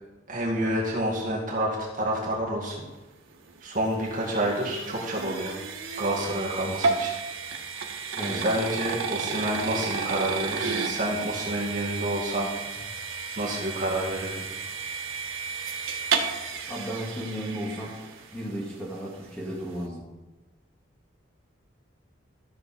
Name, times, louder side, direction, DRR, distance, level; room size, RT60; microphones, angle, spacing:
voice 1, 0.3-2.9 3.6-5.6 6.0-7.2 8.4-12.5 13.4-14.5, right 1 dB, 40° right, -3 dB, 2.1 m, -28 dB
sound 1, 3.3-18.5, right 5 dB, 85° right, 1.3 m, -32 dB
voice 2, 16.7-18.0 18.3-20.1, equal, 5° left, -4 dB, 2.0 m, -34 dB
13.5 x 6.5 x 4.4 m, 1.1 s
head